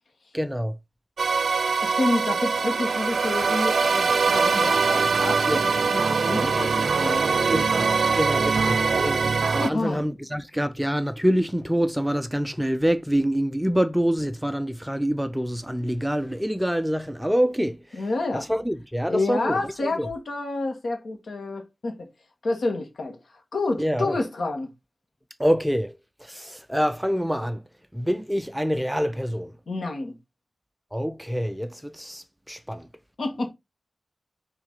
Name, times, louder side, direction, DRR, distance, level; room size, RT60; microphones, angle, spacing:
voice 1, 0.3-0.8 5.5-5.6 7.5-9.2 9.5-18.1 18.3-20.1 23.8-24.2 25.4-27.6 27.9-29.5 30.9-32.9, equal, 5° right, 0.4 m, -26 dB
sound 1, 1.2-9.7, right 5 dB, 55° right, 0.5 m, -22 dB
voice 2, 1.8-7.6 8.4-8.5 9.6-10.0 17.9-18.5 19.1-22.1 22.4-23.2 23.5-24.7 29.7-30.1 33.2-33.5, left 2 dB, 65° left, 1.8 m, -29 dB
6.1 x 3.2 x 5.5 m
wide cardioid pair, 160°, 0 cm